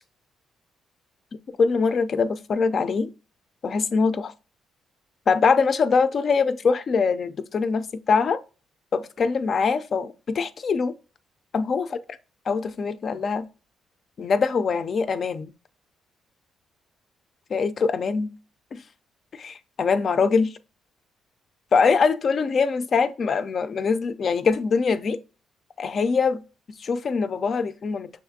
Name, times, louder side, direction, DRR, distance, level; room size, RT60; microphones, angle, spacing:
voice 1, 1.6-3.1 3.6-4.3 5.3-8.4 8.9-10.9 11.5-12.0 12.5-13.4 14.2-15.5 17.5-18.3 18.7-18.8 19.3-20.5 21.7-25.2 25.8-26.4 26.8-28.1, left 5 dB, 50° left, 0.4 m, -23 dB
6.2 x 2.4 x 2.6 m
cardioid pair, 90°, 0 cm